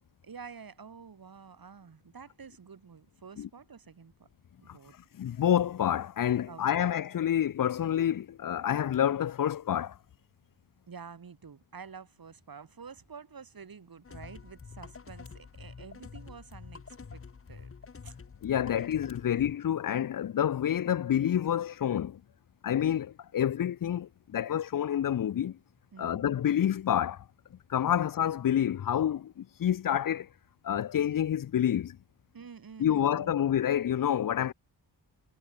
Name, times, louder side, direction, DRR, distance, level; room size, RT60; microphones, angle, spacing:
voice 1, 0.2-4.3 4.6-4.9 6.5-6.9 10.9-17.2 17.5-17.7 18.0-18.1 18.6-18.8 25.9-26.2 32.3-33.4, right 6 dB, 55° right, 2.1 m, -49 dB
voice 2, 5.1-10.0 18.4-22.2 22.6-25.6 26.0-27.2 27.5-30.3 30.6-32.0 32.8-34.5, left 10 dB, 50° left, 0.5 m, -28 dB
sound 1, 14.0-19.6, left 5 dB, 30° left, 0.9 m, -47 dB
cardioid pair, 70°, 43 cm